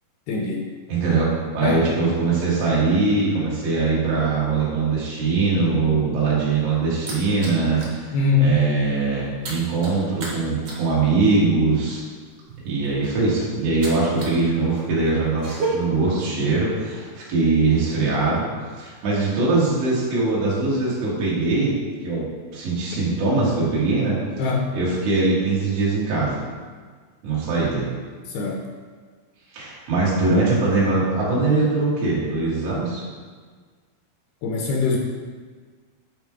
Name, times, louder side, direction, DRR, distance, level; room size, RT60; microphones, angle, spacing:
voice 1, 0.3-0.7 1.6-1.9 8.1-8.6 24.4-24.7 28.3-28.6 34.4-35.0, left 4 dB, 75° left, 0 dB, 2.5 m, -22 dB
voice 2, 0.9-1.3 1.6-12.0 12.7-18.5 18.8-21.7 22.0-22.2 22.5-24.2 24.7-26.4 27.2-27.9 29.5-33.0, right 3 dB, 85° right, -7 dB, 4.4 m, -22 dB
sound 1, 6.2-8.0 8.4-8.6 8.8-14.4 14.7-15.7, right 3 dB, 50° right, 2.0 m, -35 dB
11.0 x 3.8 x 4.7 m, 1.5 s
omnidirectional pair, 4.8 m